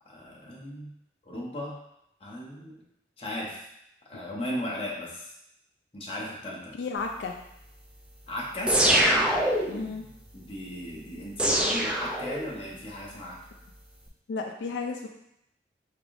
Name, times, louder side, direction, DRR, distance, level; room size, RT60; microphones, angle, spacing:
voice 1, 0.1-0.9 1.3-1.8 2.2-2.8 3.2-3.6 4.1-5.3 5.9-6.7 8.3-8.7 10.3-13.4, left 1 dB, 30° left, -4 dB, 0.8 m, -36 dB
voice 2, 6.8-7.3 9.7-10.1 14.3-15.1, left 4 dB, 85° left, 2 dB, 0.4 m, -33 dB
sound 1, 8.7-9.9 11.4-12.7, right 1 dB, 5° right, 0.3 m, -24 dB
3.6 x 3.3 x 2.5 m, 0.78 s
head